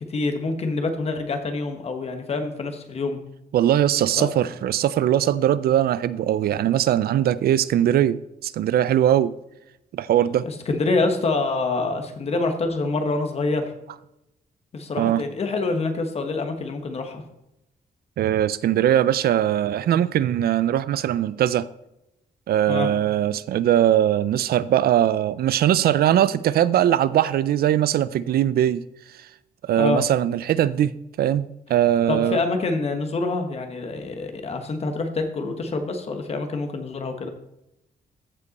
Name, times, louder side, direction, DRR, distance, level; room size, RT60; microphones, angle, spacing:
voice 1, 0.1-3.2 4.2-4.3 10.4-13.7 14.7-17.2 22.7-22.9 29.8-30.0 32.1-37.3, left 3 dB, 40° left, 1.1 m, -26 dB
voice 2, 3.5-9.3 9.9-10.5 15.0-15.2 18.2-21.7 22.5-28.8 29.6-32.4, right 11 dB, 90° right, 0.4 m, -21 dB
15.0 x 5.3 x 4.1 m
wide cardioid pair, 170°, 15 cm